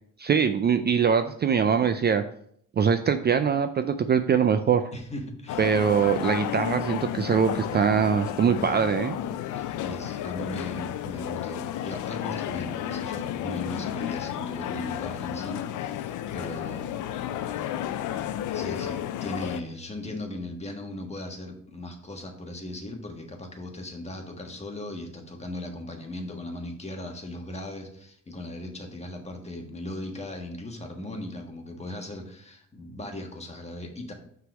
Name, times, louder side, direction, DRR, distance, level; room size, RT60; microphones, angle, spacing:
voice 1, 0.2-2.2 2.8-4.8 5.6-9.2, right 7 dB, 35° right, 9 dB, 0.4 m, -23 dB
voice 2, 4.9-5.7 9.6-17.1 18.1-34.1, left 1 dB, 20° left, 2 dB, 1.4 m, -38 dB
sound 1, 5.5-19.6, left 11 dB, 85° left, 0.5 m, -32 dB
5.7 x 3.9 x 6.0 m, 0.65 s
cardioid pair, 90°, 30 cm